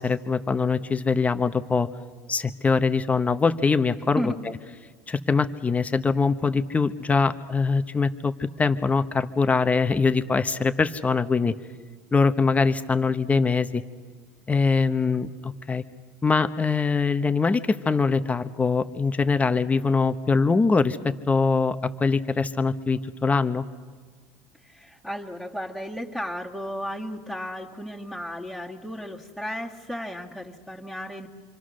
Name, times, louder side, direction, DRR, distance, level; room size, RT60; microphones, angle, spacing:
voice 1, 0.0-1.9 2.3-4.6 5.1-8.3 8.6-11.5 12.1-13.8 14.5-15.8 16.2-23.6, left 4 dB, 20° left, 10 dB, 1.1 m, -23 dB
voice 2, 24.7-31.3, equal, ahead, -2 dB, 2.1 m, -34 dB
27.5 x 24.5 x 6.4 m, 1.5 s
supercardioid pair, 105°, 8 cm